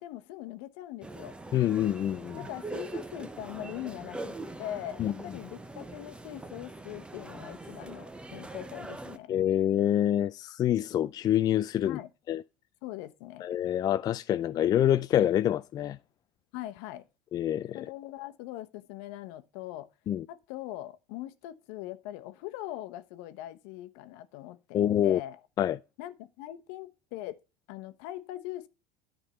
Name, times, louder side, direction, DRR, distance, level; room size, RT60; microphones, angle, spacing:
voice 1, 0.0-1.3 2.4-9.3 11.8-12.1 12.8-13.5 16.5-17.1 17.7-19.9 20.3-25.4 26.0-27.4 27.7-28.7, left 14 dB, 70° left, 1.0 m, -41 dB
sound 1, 1.0-9.2, right 2 dB, 10° right, 0.8 m, -42 dB
voice 2, 1.5-2.4 5.0-5.1 9.3-12.0 12.3-12.4 13.4-16.0 17.3-17.8 20.1-20.2 24.7-25.2 25.6-25.8, left 11 dB, 35° left, 0.4 m, -26 dB
10.0 x 3.8 x 6.8 m
supercardioid pair, 105°, 11 cm